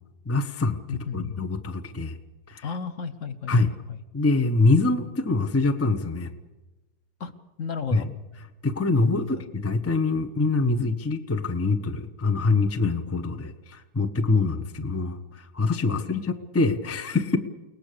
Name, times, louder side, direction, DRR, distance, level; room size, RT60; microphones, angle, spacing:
voice 1, 0.3-0.8 1.1-2.2 2.5-2.7 3.5-3.7 4.1-6.3 7.9-8.1 8.6-17.4, left 3 dB, 20° left, 9 dB, 0.4 m, -24 dB
voice 2, 0.9-1.4 2.6-4.0 7.2-7.3 7.6-8.1 9.0-9.4 15.9-16.1, left 6 dB, 45° left, 10 dB, 1.2 m, -34 dB
29.5 x 18.5 x 6.8 m, 1.1 s
omnidirectional pair, 2.1 m